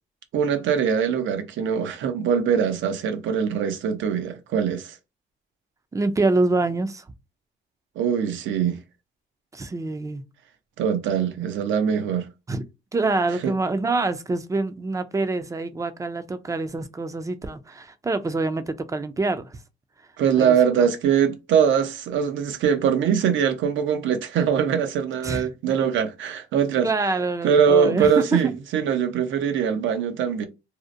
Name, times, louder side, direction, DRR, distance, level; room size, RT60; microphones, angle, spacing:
voice 1, 0.3-5.0 8.0-8.8 10.8-12.3 13.4-13.5 20.2-26.9 27.4-30.5, right 7 dB, 75° right, 0.6 m, -22 dB
voice 2, 5.9-7.0 9.5-10.2 12.5-12.6 12.9-19.6 20.4-20.9 25.2-25.5 26.8-28.5, right 3 dB, 15° right, 0.4 m, -26 dB
2.7 x 2.0 x 2.5 m
cardioid pair, 90°, 20 cm